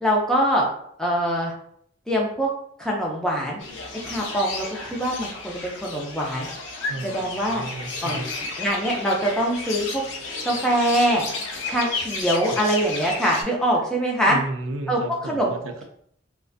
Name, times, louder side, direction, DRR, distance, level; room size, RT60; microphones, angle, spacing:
voice 1, 0.0-0.7 1.0-1.5 2.1-2.5 2.8-3.6 4.1-6.5 7.0-7.6 8.0-8.2 8.6-10.0 10.4-11.2 11.7-14.4 14.9-15.5, equal, 5° left, -2 dB, 0.3 m, -23 dB
sound 1, 3.6-13.4, left 3 dB, 70° left, 0.4 m, -32 dB
voice 2, 6.8-8.3 12.5-12.7 14.3-15.8, right 2 dB, 85° right, 5 dB, 0.4 m, -33 dB
2.4 x 2.1 x 2.5 m, 0.68 s
head